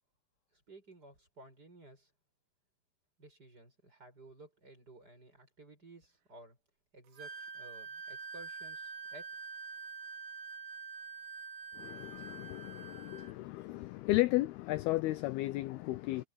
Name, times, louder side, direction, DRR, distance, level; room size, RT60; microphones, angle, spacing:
voice 1, 0.5-2.1 3.2-6.6 6.9-9.4, right 2 dB, 20° right, 8.3 m, -55 dB
Wind instrument woodwind instrument, 7.2-13.3, right 5 dB, 75° right, 5.0 m, -46 dB
voice 2, 11.8-16.2, left 18 dB, 80° left, 2.3 m, -34 dB
omnidirectional pair, 5.2 m